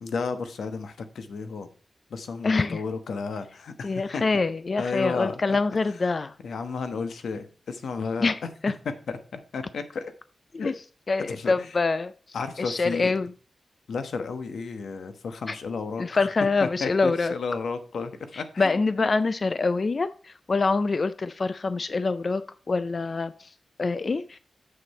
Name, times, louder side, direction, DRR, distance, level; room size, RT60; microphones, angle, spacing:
voice 1, 0.0-1.7 2.1-4.2 4.8-5.4 6.4-8.3 9.1-10.1 10.6-10.7 11.3-11.7 12.3-13.1 13.9-16.3 16.6-18.8 19.0-19.1, left 4 dB, 90° left, 1.1 m, -33 dB
voice 2, 2.4-2.8 3.8-6.3 8.2-8.7 10.6-10.7 11.1-12.1 12.6-13.3 15.5-15.6 16.0-17.3 18.3-22.4 22.7-23.5 23.8-24.4, left 3 dB, 40° left, 0.4 m, -25 dB
7.7 x 6.6 x 4.2 m
wide cardioid pair, 125°, 0 cm